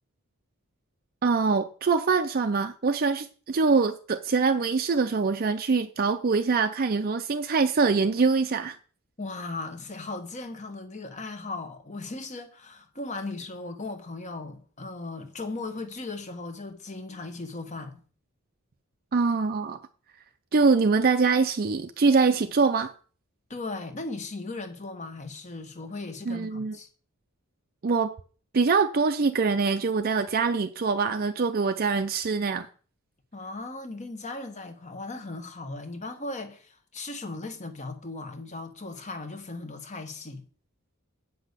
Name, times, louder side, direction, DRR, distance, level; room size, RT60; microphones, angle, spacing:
voice 1, 1.2-8.8 19.1-19.8 20.5-22.9 26.3-26.8 27.8-28.1 28.5-32.7, right 4 dB, 40° right, 0.5 m, -24 dB
voice 2, 9.2-18.0 23.5-26.9 33.3-40.4, left 3 dB, 35° left, 1.3 m, -37 dB
8.3 x 6.0 x 6.6 m
head